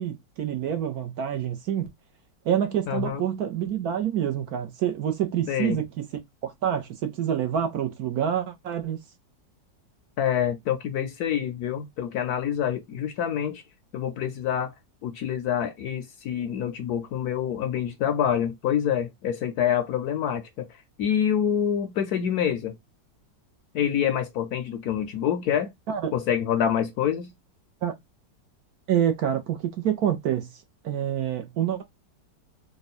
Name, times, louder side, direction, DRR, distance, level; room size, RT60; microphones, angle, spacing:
voice 1, 0.0-1.9 2.4-6.0 6.4-9.0 25.9-26.1 27.8-27.9 28.9-30.5 30.8-31.8, right 9 dB, 65° right, 1.1 m, -27 dB
voice 2, 2.9-3.2 5.5-5.8 10.2-13.6 13.9-14.7 15.0-20.7 21.0-22.8 23.7-25.7 26.1-27.3, left 9 dB, 70° left, 1.0 m, -26 dB
3.7 x 2.3 x 4.1 m
omnidirectional pair, 2.0 m